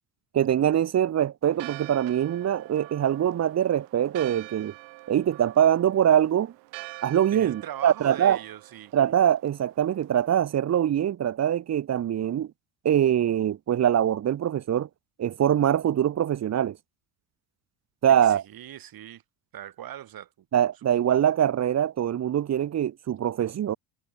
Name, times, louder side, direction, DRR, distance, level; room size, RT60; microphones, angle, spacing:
voice 1, 0.3-4.7 5.1-6.5 7.0-8.4 8.9-12.5 12.8-14.9 15.2-16.8 18.0-18.4 20.5-23.8, right 10 dB, 40° right, 1.0 m, -23 dB
Church bell, 1.5-10.4, right 28 dB, 80° right, 5.1 m, -46 dB
voice 2, 7.3-8.9 18.2-19.2 19.5-20.5, right 12 dB, 55° right, 8.0 m, -40 dB
supercardioid pair, 95°, 43 cm